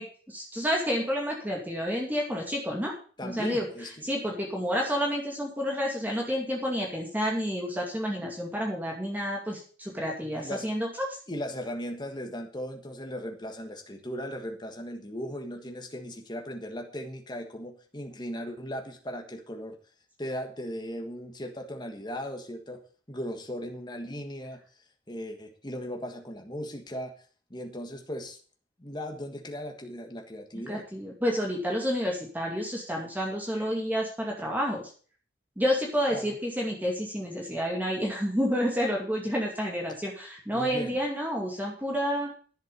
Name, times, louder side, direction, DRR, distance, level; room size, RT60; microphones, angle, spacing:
voice 1, 0.0-2.9 3.2-3.7 4.0-10.9 30.5-34.8 35.6-42.3, equal, 10° right, -1 dB, 2.3 m, -29 dB
voice 2, 3.2-4.1 10.4-10.7 11.3-19.8 20.2-22.8 23.1-24.6 25.1-27.2 27.5-28.4 28.8-30.8 36.1-36.4 40.5-41.0, equal, 20° left, 3 dB, 1.5 m, -37 dB
11.0 x 7.5 x 6.7 m, 0.41 s
head